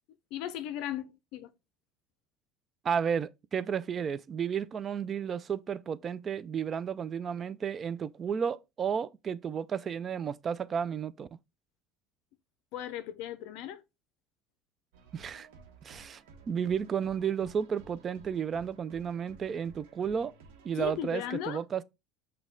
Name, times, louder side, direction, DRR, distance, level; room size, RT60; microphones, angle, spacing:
voice 1, 0.3-1.5 12.7-13.8 20.7-21.6, left 11 dB, 70° left, 0.4 m, -37 dB
voice 2, 2.8-11.3 15.1-15.5 15.8-16.2 16.5-20.3 20.6-21.8, right 7 dB, 35° right, 0.3 m, -32 dB
sound 1, 14.9-21.2, right 4 dB, 80° right, 0.9 m, -55 dB
6.1 x 2.2 x 3.7 m
supercardioid pair, 105°, 0 cm